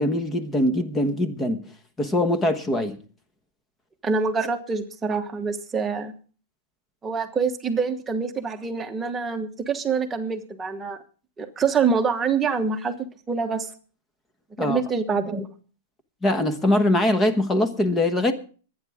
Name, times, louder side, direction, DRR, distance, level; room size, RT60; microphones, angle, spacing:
voice 1, 0.0-1.6 2.0-3.0 14.6-14.8 16.2-18.3, left 1 dB, 10° left, 1.3 m, -22 dB
voice 2, 4.0-6.1 7.0-11.0 11.4-12.9 13.3-13.7 14.6-15.5, right 5 dB, 10° right, 1.3 m, -25 dB
23.0 x 9.5 x 3.6 m
supercardioid pair, 165°, 0 cm